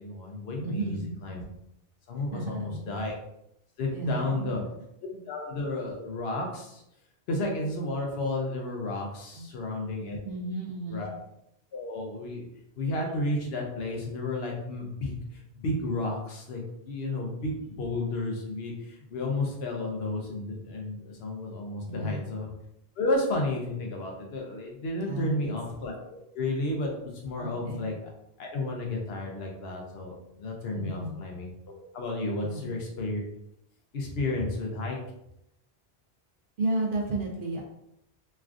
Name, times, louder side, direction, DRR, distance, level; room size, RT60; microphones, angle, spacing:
voice 1, 0.0-1.4 2.1-3.1 3.8-4.6 5.3-6.8 7.3-10.2 10.9-11.1 11.7-12.5 12.8-22.5 23.0-28.1 28.4-33.2 33.9-35.0, left 2 dB, 65° left, 0 dB, 0.8 m, -32 dB
voice 2, 0.6-1.2 2.3-2.9 3.9-4.6 9.4-9.5 10.2-11.1 21.8-22.3 25.1-25.5 27.4-27.9 30.7-31.2 32.4-32.8 36.6-37.6, right 2 dB, 60° right, -1 dB, 0.6 m, -33 dB
3.2 x 2.4 x 2.4 m, 0.80 s
omnidirectional pair, 1.2 m